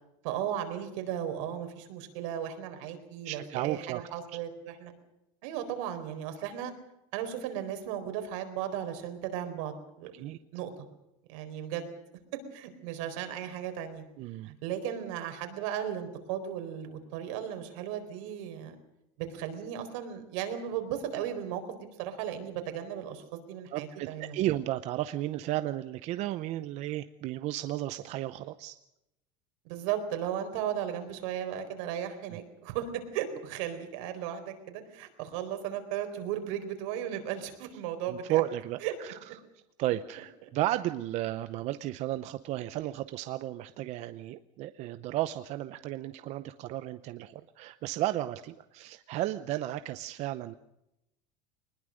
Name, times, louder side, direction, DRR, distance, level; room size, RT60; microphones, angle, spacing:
voice 1, 0.2-4.9 5.4-6.7 7.1-10.2 10.5-10.7 11.3-11.9 12.5-14.0 14.4-18.7 19.2-24.4 29.6-38.4 38.8-38.9, right 10 dB, 80° right, 7 dB, 4.2 m, -36 dB
voice 2, 3.2-4.0 10.1-10.4 14.2-14.5 23.7-28.8 32.3-32.4 38.1-39.2 39.8-50.6, right 14 dB, 45° right, 12 dB, 0.7 m, -33 dB
22.0 x 20.5 x 6.5 m, 0.87 s
cardioid pair, 155°, 16 cm